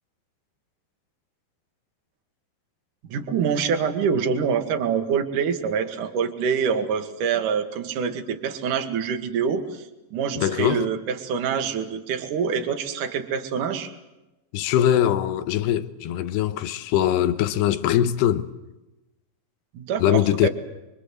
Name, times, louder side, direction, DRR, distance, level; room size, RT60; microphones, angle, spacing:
voice 1, 3.0-9.8 10.1-13.9 19.7-20.5, right 6 dB, 55° right, 3.3 m, -25 dB
voice 2, 10.4-10.9 14.5-18.5 20.0-20.5, left 11 dB, 75° left, 3.1 m, -22 dB
27.0 x 25.0 x 7.8 m
omnidirectional pair, 5.0 m